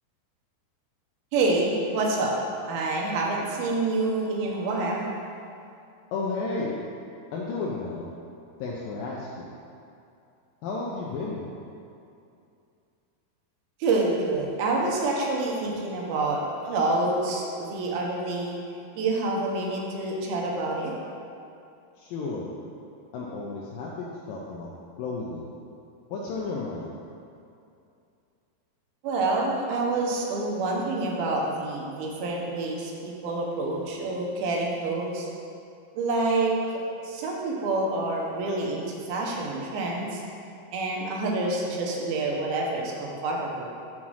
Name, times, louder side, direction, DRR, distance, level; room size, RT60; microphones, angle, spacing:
voice 1, 1.3-2.4 2.7-5.1 13.8-18.6 18.9-20.9 29.0-35.3 35.9-40.2 40.7-43.7, right 2 dB, 75° right, -2 dB, 2.6 m, -27 dB
voice 2, 6.1-6.8 7.3-8.1 8.6-9.5 10.6-11.4 22.0-22.5 23.1-25.5 26.1-26.9, left 3 dB, 80° left, -3 dB, 2.0 m, -33 dB
6.0 x 5.8 x 6.3 m, 2.6 s
omnidirectional pair, 4.7 m